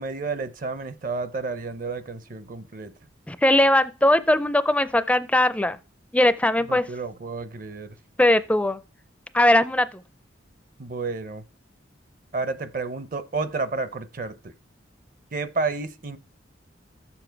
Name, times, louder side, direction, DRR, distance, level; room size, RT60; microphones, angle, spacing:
voice 1, 0.0-2.9 6.7-8.0 10.8-11.4 12.3-14.5 15.3-16.2, right 4 dB, 45° right, 0.6 m, -31 dB
voice 2, 3.3-5.8 6.1-6.8 8.2-8.8 9.3-10.0, left 1 dB, 5° left, 0.4 m, -20 dB
13.5 x 7.1 x 4.5 m
head